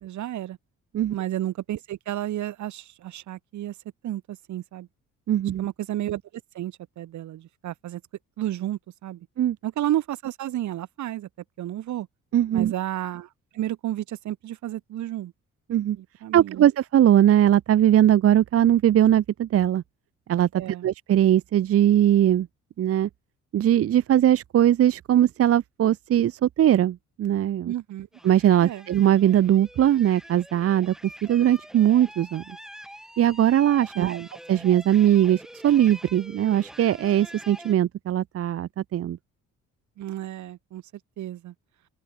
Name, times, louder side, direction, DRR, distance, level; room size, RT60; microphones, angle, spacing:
voice 1, 0.0-0.6 1.1-3.7 4.0-4.9 5.6-6.2 6.5-8.0 8.4-9.3 9.6-11.3 11.6-12.1 12.5-15.3 15.9-16.6 20.5-20.9 27.6-28.1 28.6-28.8 33.9-34.3 40.0-40.8 41.2-41.5, right 13 dB, 70° right, 1.3 m, -32 dB
voice 2, 5.3-5.7 9.4-9.6 12.3-12.7 15.7-16.0 16.3-19.8 20.3-20.5 20.8-22.5 22.8-23.1 23.5-27.7 28.2-30.9 31.2-32.4 33.2-34.2 34.5-39.2, right 11 dB, 50° right, 0.6 m, -20 dB
sound 1, 28.1-37.7, equal, ahead, 1.4 m, -45 dB
open air
cardioid pair, 90°, 30 cm